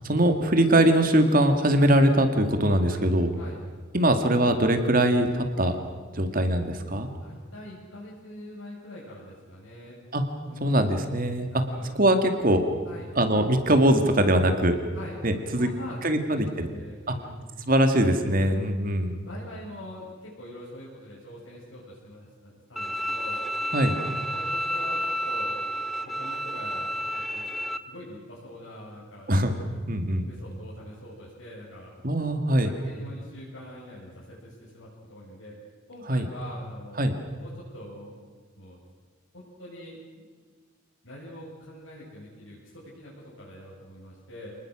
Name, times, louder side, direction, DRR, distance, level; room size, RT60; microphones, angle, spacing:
voice 1, 0.1-3.3 3.9-5.8 6.1-7.1 10.1-10.2 10.6-11.6 12.0-12.6 13.2-14.8 15.2-15.7 16.0-16.7 17.1-17.2 17.7-19.1 23.7-23.9 29.3-29.5 29.9-30.3 32.0-32.7 36.1-36.3 37.0-37.1, right 1 dB, 45° right, 7 dB, 2.2 m, -22 dB
voice 2, 7.2-10.0 10.5-11.0 11.5-11.9 12.8-13.1 14.9-17.4 18.4-18.6 18.8-23.4 23.8-25.6 26.1-27.5 27.9-29.8 30.0-32.0 32.6-35.6 35.9-37.1 37.4-38.2 38.6-38.8 39.3-40.0 41.0-44.6, left 1 dB, 80° left, -7 dB, 6.9 m, -44 dB
Bowed string instrument, 22.8-27.8, equal, ahead, 0.7 m, -30 dB
28.5 x 20.5 x 6.4 m, 1.5 s
head